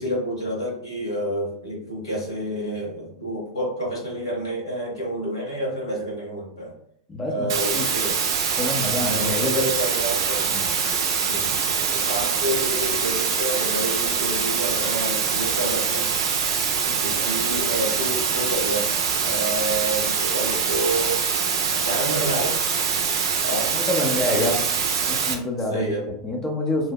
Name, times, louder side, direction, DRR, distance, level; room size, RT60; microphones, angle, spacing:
voice 1, 0.0-6.7 7.3-8.2 8.8-10.5 11.2-11.6 11.9-16.1 17.0-18.9 19.2-21.2 21.7-22.6 23.4-24.6 25.7-26.1, right 1 dB, 85° left, -3 dB, 1.1 m, -29 dB
voice 2, 7.1-7.9 8.5-9.7 10.5-10.7 16.9-17.3 23.7-24.6 25.1-26.9, left 1 dB, 20° left, 1 dB, 0.6 m, -27 dB
sound 1, 7.5-25.3, right 6 dB, 65° right, 0.4 m, -24 dB
2.8 x 2.0 x 2.3 m, 0.70 s
hypercardioid pair, 90°, 2 cm